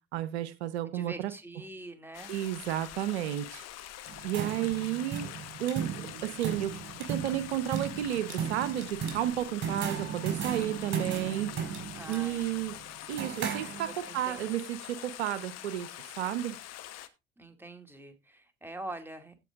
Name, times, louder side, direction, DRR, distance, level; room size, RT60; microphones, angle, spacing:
voice 1, 0.1-1.3 2.3-3.6 4.2-5.3 5.6-6.7 7.1-11.5 12.1-12.8 13.1-16.6, right 12 dB, 75° right, 15 dB, 0.9 m, -32 dB
voice 2, 0.9-2.3 11.9-12.4 13.8-14.6 17.4-19.5, right 2 dB, 5° right, 6 dB, 2.3 m, -44 dB
Stream, 2.1-17.1, left 13 dB, 50° left, 1.3 m, -45 dB
sound 1, 4.1-14.2, right 7 dB, 35° right, 4.8 m, -36 dB
16.5 x 5.4 x 3.6 m, 0.24 s
hypercardioid pair, 65°, 33 cm